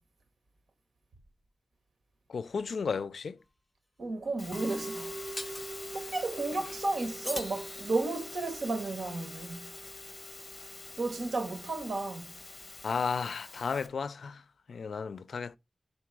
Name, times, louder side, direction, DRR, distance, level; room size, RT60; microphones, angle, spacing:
voice 1, 2.3-3.4 12.8-14.4 14.7-15.6, left 5 dB, 85° left, 0.4 m, -33 dB
sound 1, 3.4-3.5 5.4-5.7 7.2-8.3, left 1 dB, 15° left, 0.9 m, -41 dB
voice 2, 4.0-5.1 5.9-9.7 11.0-12.3, right 3 dB, 75° right, 1.4 m, -33 dB
Musical instrument, 4.4-13.9, equal, 35° left, 1.2 m, -43 dB
5.8 x 4.2 x 4.6 m
wide cardioid pair, 85°, 0 cm